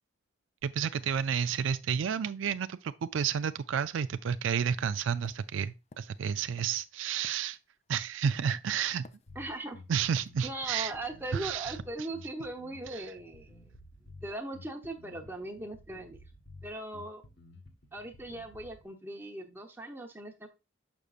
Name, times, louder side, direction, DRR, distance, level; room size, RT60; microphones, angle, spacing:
voice 1, 0.6-7.6 7.9-9.1 9.9-10.9 11.3-11.8 12.9-13.0, right 7 dB, 75° right, 0.4 m, -31 dB
sound 1, 5.2-8.5 9.0-9.7 10.2-10.4, left 3 dB, 35° left, 0.4 m, -55 dB
Bass guitar, 9.3-18.8, left 2 dB, 55° left, 1.4 m, -53 dB
voice 2, 9.3-9.8 10.4-13.6 14.2-16.2 16.6-17.2 17.9-20.5, right 2 dB, 10° right, 1.0 m, -39 dB
6.7 x 6.1 x 2.4 m
head